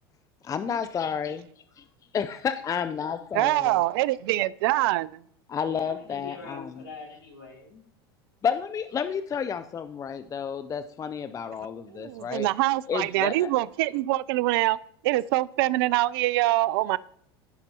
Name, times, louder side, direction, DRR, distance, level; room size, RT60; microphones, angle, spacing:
voice 1, 0.4-1.5 2.1-3.8 5.5-6.8 8.4-12.5 12.9-13.5, left 7 dB, 25° left, 0.5 m, -31 dB
voice 2, 3.4-5.2 11.9-14.8 15.0-17.0, right 17 dB, 70° right, 0.4 m, -24 dB
voice 3, 5.7-7.9, left 4 dB, 85° left, 3.8 m, -43 dB
15.5 x 5.9 x 2.9 m
hypercardioid pair, 90°, 13 cm